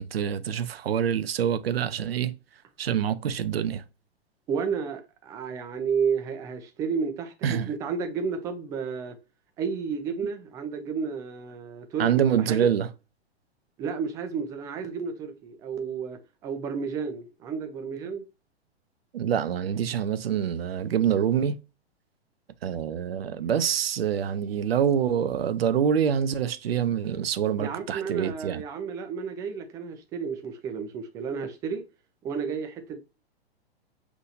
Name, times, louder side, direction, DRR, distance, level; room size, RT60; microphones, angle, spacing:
voice 1, 0.0-2.3 2.8-3.8 7.4-7.7 12.0-12.9 19.1-21.6 22.6-28.6, right 8 dB, 65° right, 0.6 m, -26 dB
voice 2, 4.5-9.2 9.6-12.7 13.8-18.2 27.6-31.8 32.2-33.0, right 6 dB, 10° right, 0.3 m, -32 dB
5.8 x 2.7 x 2.6 m
figure-of-eight pair, 110°, 32 cm